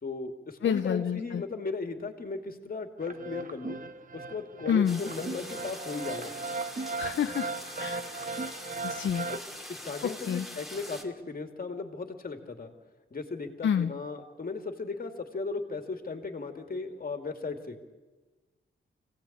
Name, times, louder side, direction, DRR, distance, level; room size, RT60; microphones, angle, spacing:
voice 1, 0.0-3.8 4.1-6.3 9.3-9.4 9.7-12.7 13.1-17.8, left 4 dB, 45° left, 6 dB, 2.4 m, -36 dB
voice 2, 0.6-1.4 4.7-5.0 7.0-7.5 7.8-8.0 8.8-9.3 10.0-10.5 13.6-13.9, left 8 dB, 60° left, 9 dB, 0.7 m, -28 dB
sound 1, 3.0-9.4, right 3 dB, 40° right, 1.1 m, -37 dB
sound 2, 4.9-11.0, left 1 dB, ahead, 2.6 m, -43 dB
24.5 x 17.0 x 8.6 m, 1.3 s
cardioid pair, 100°, 21 cm